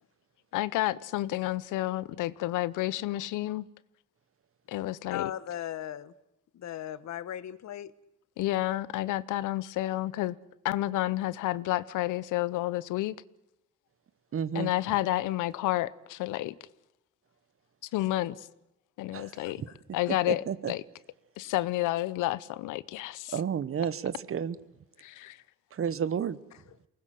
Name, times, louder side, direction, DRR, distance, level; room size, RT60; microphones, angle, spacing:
voice 1, 0.5-3.7 4.7-5.3 8.4-10.4 10.6-13.2 14.5-16.5 17.9-18.4 19.0-19.6 19.9-20.8 21.4-23.3 25.0-25.4, left 16 dB, 90° left, 0.8 m, -30 dB
voice 2, 5.1-6.1 6.5-7.9 19.4-19.5 21.4-21.5, left 11 dB, 65° left, 1.2 m, -37 dB
voice 3, 14.3-14.7 19.1-19.7 20.1-20.7 23.3-24.6 25.7-26.4, right 7 dB, 45° right, 1.1 m, -32 dB
23.5 x 20.0 x 7.6 m
cardioid pair, 90°, 30 cm